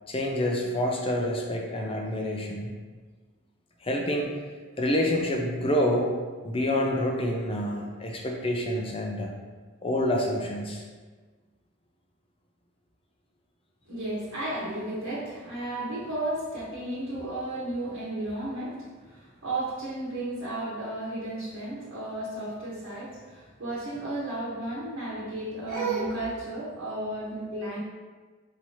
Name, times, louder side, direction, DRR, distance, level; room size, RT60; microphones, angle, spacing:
voice 1, 0.1-2.7 3.8-4.3 4.8-6.1 6.4-9.3 9.8-10.8, left 1 dB, 25° left, 1 dB, 0.4 m, -27 dB
voice 2, 13.9-27.8, right 2 dB, 75° right, -10 dB, 1.1 m, -33 dB
4.7 x 2.8 x 3.0 m, 1.4 s
head